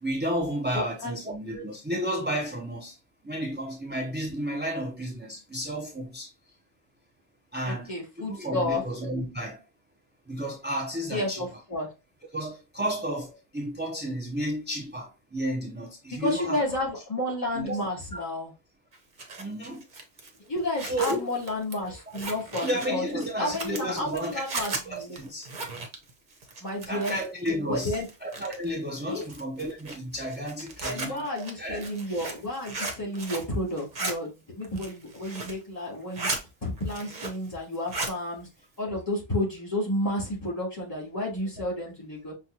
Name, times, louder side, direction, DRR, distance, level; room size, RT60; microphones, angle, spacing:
voice 1, 0.0-3.0 3.2-6.3 7.5-7.9 8.2-9.6 10.3-11.4 12.3-16.6 17.5-17.8 18.1-18.3 19.4-19.8 20.8-21.2 22.6-24.4 24.8-25.5 26.9-31.3 31.6-31.8, equal, 15° right, 0.4 m, -32 dB
voice 2, 0.7-1.1 7.6-8.8 11.1-11.9 16.2-18.5 20.5-25.2 26.6-27.1 27.6-28.1 29.1-29.2 30.8-36.3 36.6-38.5 38.8-42.3, left 1 dB, 25° left, 2.6 m, -31 dB
Zipper (clothing), 18.9-27.5 27.8-28.7 29.2-33.5 33.8-34.1 34.6-35.6 35.9-36.4 36.8-37.5 37.7-38.2, right 3 dB, 50° right, 1.0 m, -36 dB
5.9 x 2.3 x 2.7 m
omnidirectional pair, 1.0 m